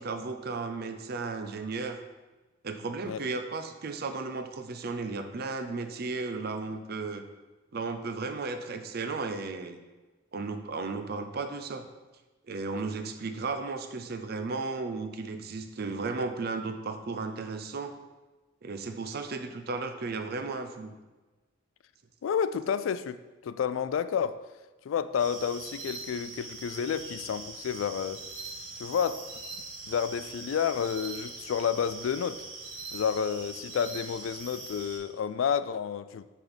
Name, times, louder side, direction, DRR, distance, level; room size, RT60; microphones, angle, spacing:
voice 1, 0.0-2.0 2.6-7.2 7.7-9.8 10.3-11.9 12.5-18.0 18.6-20.9, right 3 dB, 50° right, 8 dB, 0.5 m, -34 dB
voice 2, 22.2-23.2 23.4-24.4 24.8-28.2 28.8-29.5 29.9-32.5 32.9-36.2, left 7 dB, 80° left, 14 dB, 0.3 m, -30 dB
sound 1, 25.2-35.0, right 3 dB, 70° right, 2.2 m, -42 dB
6.2 x 5.8 x 3.5 m, 1.2 s
head